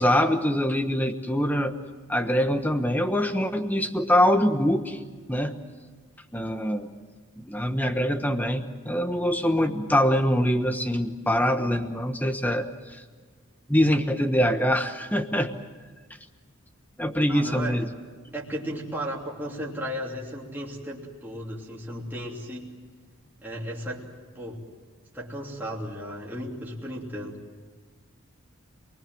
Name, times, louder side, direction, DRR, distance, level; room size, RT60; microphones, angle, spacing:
voice 1, 0.0-1.8 2.1-5.0 5.3-5.6 6.3-6.9 7.4-13.0 13.7-15.5 17.0-17.9, equal, 10° left, 8 dB, 1.2 m, -24 dB
voice 2, 17.3-17.8 18.3-22.7 23.4-24.1 24.3-24.7 25.1-27.4, equal, 10° right, -4 dB, 3.0 m, -35 dB
28.0 x 20.5 x 7.8 m, 1.4 s
head